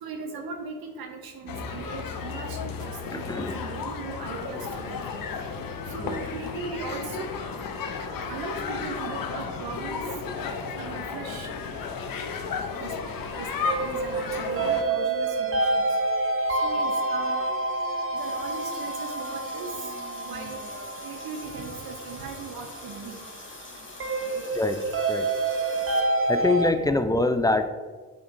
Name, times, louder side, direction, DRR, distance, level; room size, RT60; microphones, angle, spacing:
voice 1, 0.0-5.3 5.9-7.3 8.3-10.0 10.7-11.5 12.8-12.9 13.3-15.9 16.6-17.5 18.1-19.7 20.3-20.6 21.0-23.2 24.3-24.4 26.8-26.9, right 4 dB, 55° right, 3 dB, 0.9 m, -38 dB
sound 1, 1.5-14.8, left 5 dB, 55° left, 0.8 m, -33 dB
voice 2, 3.1-3.7 6.0-6.2 24.5-24.8 25.1-25.3 26.3-27.7, left 2 dB, 10° left, 9 dB, 0.4 m, -24 dB
sound 2, 13.1-26.7, right 2 dB, 30° right, 0.7 m, -28 dB
Water tap faucet, 18.2-26.0, left 2 dB, 25° left, 1.7 m, -45 dB
8.3 x 4.4 x 2.6 m, 1.5 s
hypercardioid pair, 40°, 42 cm